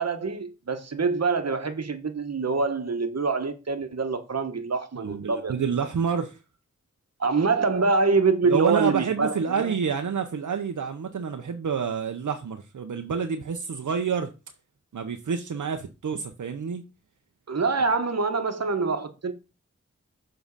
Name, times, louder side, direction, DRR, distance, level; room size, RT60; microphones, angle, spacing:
voice 1, 0.0-5.5 7.2-9.7 17.5-19.3, right 4 dB, 60° right, 1.1 m, -25 dB
voice 2, 5.0-6.4 8.4-14.3 14.9-16.8, right 6 dB, 85° right, 0.7 m, -28 dB
7.1 x 3.8 x 5.3 m
wide cardioid pair, 60°, 29 cm